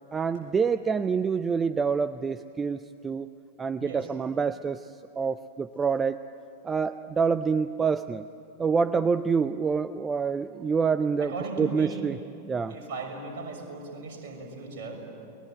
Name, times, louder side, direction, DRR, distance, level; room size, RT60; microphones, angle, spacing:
voice 1, 0.1-2.8 3.0-3.3 3.6-6.2 6.6-8.3 8.6-11.3 11.6-12.2 12.5-12.7, right 5 dB, 20° right, 14 dB, 0.5 m, -26 dB
voice 2, 11.2-12.1 12.7-15.1, right 3 dB, 50° right, 2 dB, 6.2 m, -37 dB
30.0 x 20.5 x 9.0 m, 2.7 s
figure-of-eight pair, 90°, 0 cm